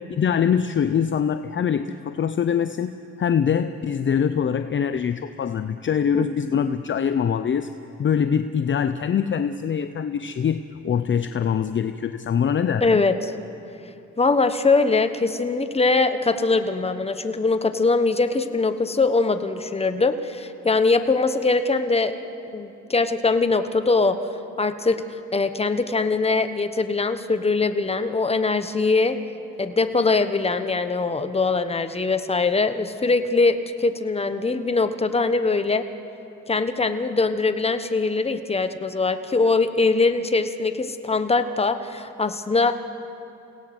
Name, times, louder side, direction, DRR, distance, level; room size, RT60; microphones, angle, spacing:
voice 1, 0.0-2.9 3.2-7.7 8.0-13.0, left 7 dB, 40° left, 10 dB, 0.7 m, -23 dB
voice 2, 12.8-13.2 14.2-22.1 22.5-24.2 24.6-25.0 25.3-29.2 29.6-35.8 36.5-42.7, left 3 dB, 20° left, 9 dB, 1.2 m, -22 dB
30.0 x 17.5 x 6.1 m, 2.8 s
cardioid pair, 90°, 30 cm